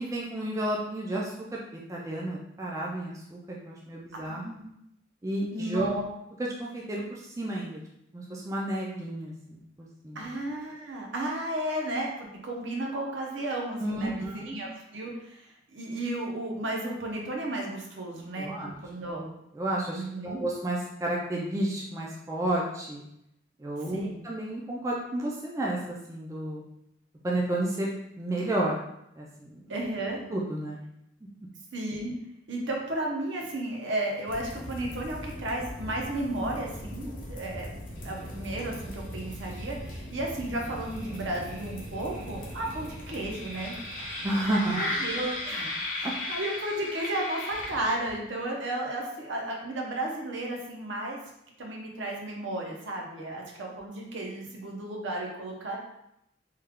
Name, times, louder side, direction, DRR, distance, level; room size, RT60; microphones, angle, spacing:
voice 1, 0.0-4.5 5.2-5.9 6.4-7.8 8.1-10.2 13.8-14.5 18.4-18.8 19.6-23.0 23.6-26.6 27.2-27.9 28.2-28.8 29.2-29.6 30.3-30.8 44.2-44.8 46.0-46.1, right 1 dB, 15° right, -3 dB, 0.3 m, -31 dB
voice 2, 4.2-4.7 5.5-6.0 10.1-18.5 18.8-19.3 19.9-20.4 23.9-24.2 29.7-30.2 31.7-32.1 32.5-37.8 38.0-43.7 44.7-51.2 51.6-55.8, right 1 dB, 65° right, -1 dB, 0.7 m, -33 dB
sound 1, 34.3-48.2, left 1 dB, 45° left, 0.8 m, -37 dB
3.2 x 2.3 x 3.5 m, 0.80 s
head